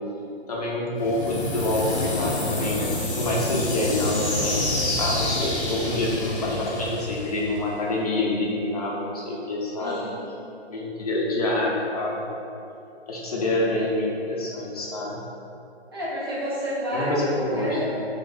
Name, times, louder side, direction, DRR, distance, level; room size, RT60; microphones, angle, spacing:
voice 1, 0.5-2.9 3.1-4.7 5.0-10.0 10.7-12.4 13.1-15.2 16.9-18.1, left 1 dB, 35° left, -3 dB, 0.4 m, -27 dB
sound 1, 1.0-7.9, left 2 dB, 85° left, 0.8 m, -28 dB
voice 2, 9.8-10.2 15.9-17.9, equal, 25° right, -8 dB, 0.4 m, -30 dB
2.8 x 2.1 x 3.8 m, 2.6 s
figure-of-eight pair, 140°, 33 cm